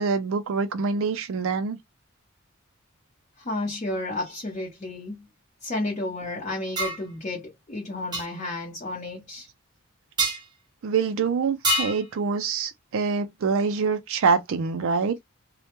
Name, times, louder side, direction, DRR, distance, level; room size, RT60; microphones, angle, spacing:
voice 1, 0.0-1.8 10.8-15.2, right 5 dB, 65° right, 0.4 m, -25 dB
voice 2, 3.4-5.1 5.6-9.5, left 2 dB, 35° left, 0.7 m, -32 dB
sound 1, 6.8-7.0 8.1-8.3 10.2-10.4 11.6-12.0, right 1 dB, 20° right, 0.7 m, -25 dB
2.1 x 2.1 x 2.8 m
head